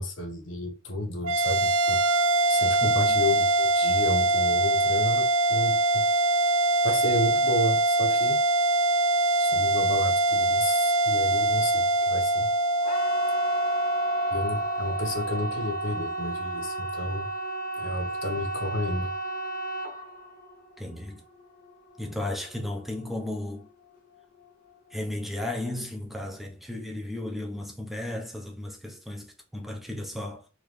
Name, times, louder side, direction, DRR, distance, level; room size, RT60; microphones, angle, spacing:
voice 1, 0.0-2.0 2.5-6.0 6.8-8.4 9.4-12.5 14.3-17.3 17.8-19.1, left 1 dB, 70° left, 1.2 m, -31 dB
sound 1, 1.2-15.8, right 1 dB, 75° right, 0.4 m, -24 dB
voice 2, 2.8-3.3 20.8-21.2 22.0-23.7 24.9-30.5, left 1 dB, ahead, 0.8 m, -34 dB
sound 2, 12.8-23.7 23.9-24.5 24.9-25.0, right 2 dB, 45° left, 0.8 m, -33 dB
3.7 x 3.2 x 3.2 m
head